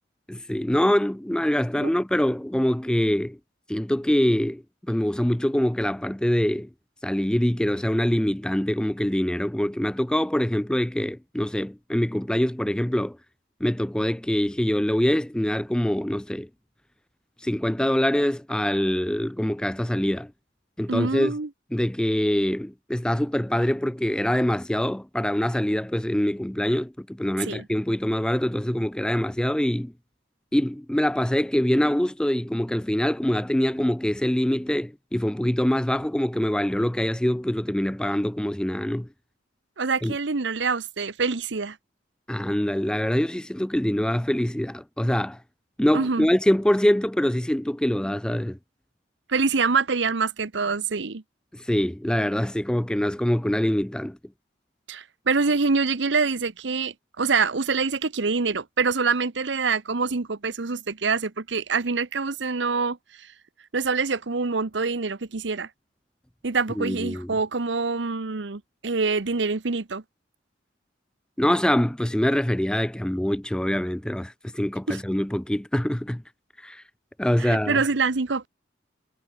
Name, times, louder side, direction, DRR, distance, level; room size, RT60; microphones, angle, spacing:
voice 1, 0.3-3.4 3.7-6.7 7.0-13.2 13.6-16.5 17.4-20.3 20.8-21.3 21.7-29.9 30.5-39.1 40.0-40.1 42.3-45.4 45.8-48.6 51.5-54.2 66.8-67.3 71.4-76.2 76.6-76.8 77.2-77.8, equal, 5° left, 0.4 m, -24 dB
voice 2, 20.9-21.5 27.4-27.6 39.8-41.8 45.9-46.3 49.3-51.2 54.9-63.0 63.7-65.7 66.4-70.0 74.9-75.0 77.4-78.5, right 4 dB, 70° right, 1.0 m, -25 dB
head